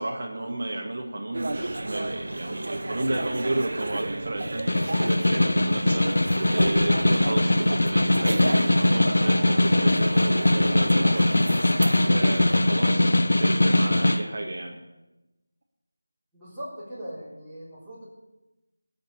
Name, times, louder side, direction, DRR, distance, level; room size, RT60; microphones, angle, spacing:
voice 1, 0.0-11.6 12.0-14.8, right 2 dB, 45° right, 0 dB, 1.9 m, -32 dB
sound 1, 1.3-12.6, right 2 dB, 65° right, 1.1 m, -32 dB
Snare drum, 4.5-14.2, left 1 dB, 85° left, 1.0 m, -21 dB
voice 2, 16.3-18.0, equal, ahead, -15 dB, 3.8 m, -39 dB
18.5 x 7.8 x 8.4 m, 1.0 s
figure-of-eight pair, 175°, 0 cm